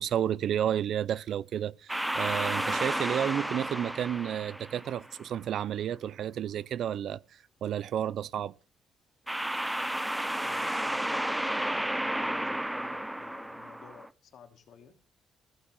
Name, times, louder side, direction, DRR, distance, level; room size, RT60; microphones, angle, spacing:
voice 1, 0.0-8.5, right 10 dB, 70° right, 0.5 m, -31 dB
sound 1, 1.9-5.2 9.3-14.1, right 1 dB, 5° right, 0.7 m, -32 dB
voice 2, 10.4-15.0, left 7 dB, 70° left, 2.9 m, -52 dB
16.0 x 6.0 x 7.5 m
cardioid pair, 90°, 0 cm